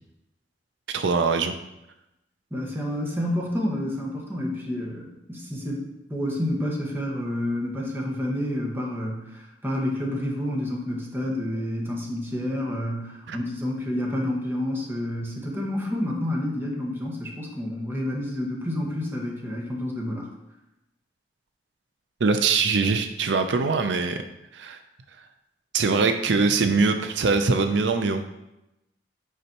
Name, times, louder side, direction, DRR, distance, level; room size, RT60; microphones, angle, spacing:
voice 1, 0.9-1.5 13.3-13.4 22.2-24.2 24.5-24.8 25.7-28.2, right 4 dB, 85° right, 8 dB, 0.5 m, -22 dB
voice 2, 2.5-5.8 6.1-20.3, left 1 dB, 15° right, -2 dB, 1.4 m, -29 dB
8.1 x 5.4 x 2.9 m, 0.90 s
head